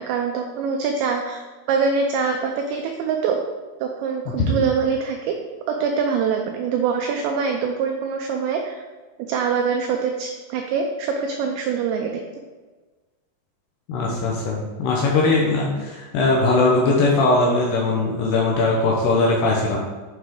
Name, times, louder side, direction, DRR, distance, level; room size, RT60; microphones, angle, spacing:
voice 1, 0.0-1.4 1.7-3.4 3.8-5.4 5.7-8.8 9.3-12.2, right 5 dB, 85° right, 3 dB, 2.5 m, -24 dB
voice 2, 13.9-19.8, left 2 dB, 75° left, -2 dB, 2.6 m, -20 dB
9.0 x 5.8 x 3.7 m, 1.3 s
omnidirectional pair, 5.8 m